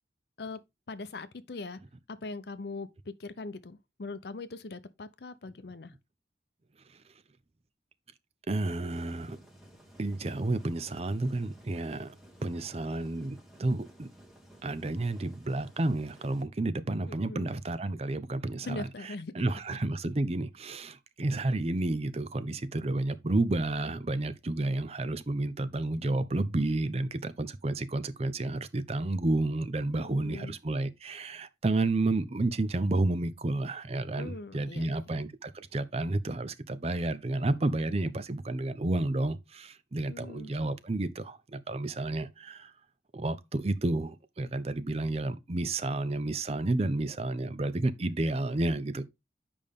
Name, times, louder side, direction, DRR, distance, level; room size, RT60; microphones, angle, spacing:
voice 1, 0.9-1.8 2.1-5.9 17.1-17.5 18.7-19.8 29.9-30.5 34.2-35.2 40.1-40.5, left 3 dB, 65° left, 0.6 m, -41 dB
voice 2, 8.5-9.4 10.0-12.1 12.4-14.1 14.6-18.8 19.3-42.7 43.1-49.0, right 2 dB, 35° right, 0.5 m, -31 dB
sound 1, 8.9-16.4, right 1 dB, ahead, 1.3 m, -55 dB
8.5 x 5.2 x 3.6 m
head